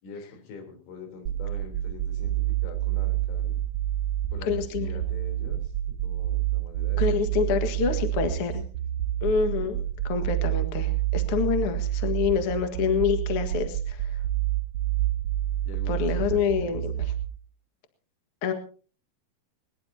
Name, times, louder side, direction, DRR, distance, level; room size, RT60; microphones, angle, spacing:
voice 1, 0.0-3.6 4.3-7.2 8.7-8.8 9.4-10.0 11.5-11.6 15.7-16.8, left 4 dB, 90° left, 4 dB, 6.0 m, -44 dB
sound 1, 1.3-17.3, right 13 dB, 80° right, 2.0 m, -28 dB
voice 2, 4.4-4.9 7.0-8.6 9.2-14.2 15.9-16.9 18.4-18.5, left 6 dB, 60° left, 7 dB, 1.5 m, -27 dB
21.0 x 20.5 x 2.8 m, 0.39 s
omnidirectional pair, 5.3 m